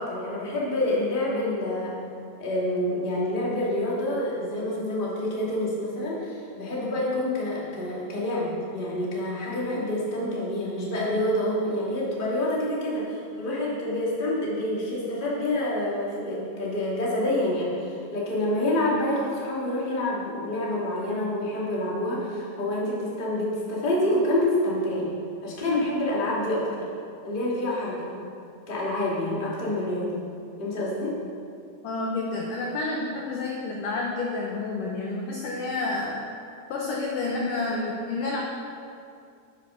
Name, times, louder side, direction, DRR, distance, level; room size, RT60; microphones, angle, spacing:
voice 1, 0.0-1.9 2.4-25.0 25.4-26.8 27.2-28.1 28.7-30.2 30.6-31.1, left 1 dB, 20° left, -6 dB, 1.7 m, -27 dB
voice 2, 31.8-36.2 36.7-38.4, left 3 dB, 70° left, -1 dB, 2.0 m, -29 dB
10.0 x 8.9 x 6.4 m, 2.4 s
omnidirectional pair, 4.9 m